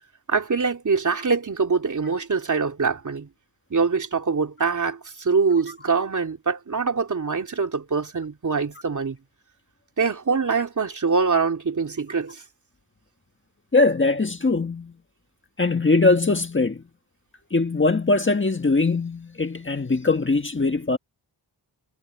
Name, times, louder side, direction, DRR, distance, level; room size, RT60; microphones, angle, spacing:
voice 1, 0.3-3.3 3.7-9.2 10.0-12.4, right 5 dB, 45° right, 3.1 m, -24 dB
voice 2, 13.7-14.9 15.6-16.8 17.5-21.0, left 3 dB, 30° left, 1.6 m, -21 dB
wide cardioid pair, 130°, 42 cm